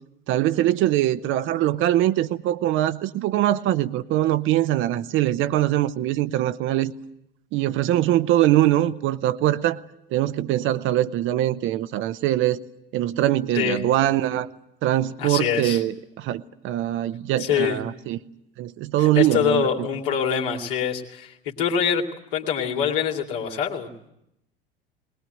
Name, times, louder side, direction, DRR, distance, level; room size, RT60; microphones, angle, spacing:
voice 1, 0.3-6.9 7.5-9.8 10.1-12.6 12.9-14.5 14.8-18.2 18.6-19.9, right 13 dB, 45° right, 13 dB, 0.8 m, -22 dB
voice 2, 15.2-15.8 17.4-17.8 19.0-22.1 22.3-23.9, left 8 dB, 65° left, 1 dB, 2.7 m, -24 dB
20.5 x 19.5 x 9.2 m, 0.82 s
figure-of-eight pair, 70°, 29 cm